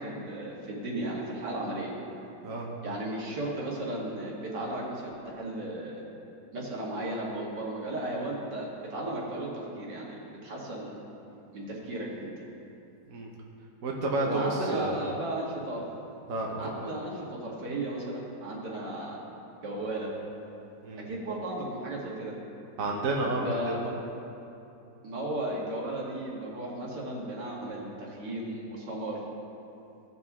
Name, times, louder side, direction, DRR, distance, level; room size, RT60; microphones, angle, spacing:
voice 1, 0.0-1.9 2.8-6.0 6.5-9.5 9.8-10.9 11.5-12.5 14.2-15.8 16.6-19.2 19.6-20.1 21.0-22.3 23.4-23.9 25.0-29.2, right 1 dB, 80° right, -4 dB, 2.2 m, -35 dB
voice 2, 13.8-15.0 16.3-16.9 20.8-21.1 22.8-23.7, right 2 dB, 55° right, -2 dB, 1.3 m, -30 dB
16.0 x 5.4 x 3.6 m, 2.8 s
omnidirectional pair, 1.8 m